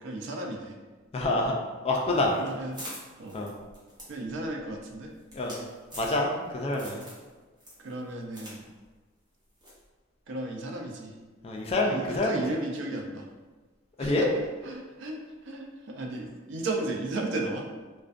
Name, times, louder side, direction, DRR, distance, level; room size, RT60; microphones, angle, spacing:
voice 1, 0.0-0.8 2.4-2.8 3.2-3.4 4.1-5.1 7.8-8.7 10.3-11.1 11.8-13.3 14.0-14.1 14.6-17.7, right 2 dB, 65° right, 2 dB, 0.4 m, -34 dB
voice 2, 1.1-1.6 1.8-2.3 3.3-3.5 5.3-5.6 6.0-7.0 11.4-12.4 14.0-14.3, left 2 dB, 30° left, 0 dB, 0.3 m, -27 dB
sound 1, 2.1-6.5 6.8-7.3 7.6-8.6 8.8-8.9 9.6-9.8, equal, 20° right, 0.7 m, -45 dB
2.4 x 2.1 x 2.4 m, 1.3 s
head